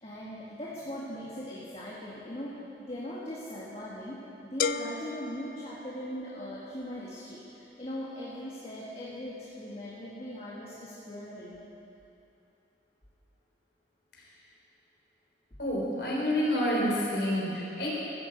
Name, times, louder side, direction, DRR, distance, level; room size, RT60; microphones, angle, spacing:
voice 1, 0.0-2.6 2.9-11.6, equal, 35° left, -6 dB, 1.7 m, -40 dB
sound 1, 4.6-6.5, left 6 dB, 50° left, 0.4 m, -35 dB
voice 2, 15.6-17.9, equal, 75° left, -4 dB, 3.9 m, -28 dB
14.0 x 8.4 x 7.9 m, 2.8 s
head